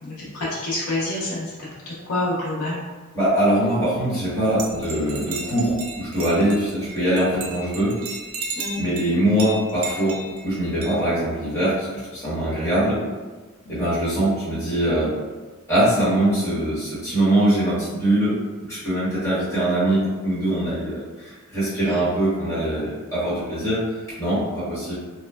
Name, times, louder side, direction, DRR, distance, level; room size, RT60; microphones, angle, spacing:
voice 1, 0.0-1.5 1.9-2.8 8.6-8.8 13.7-13.8 21.8-21.9, left 2 dB, 75° left, -7 dB, 0.8 m, -27 dB
voice 2, 3.1-8.0 8.7-13.0 13.7-15.1 15.7-18.4 18.7-24.9, right 1 dB, 10° left, -12 dB, 1.2 m, -22 dB
sound 1, 4.6-11.0, right 3 dB, 75° right, 0.4 m, -35 dB
3.0 x 2.1 x 2.2 m, 1.3 s
head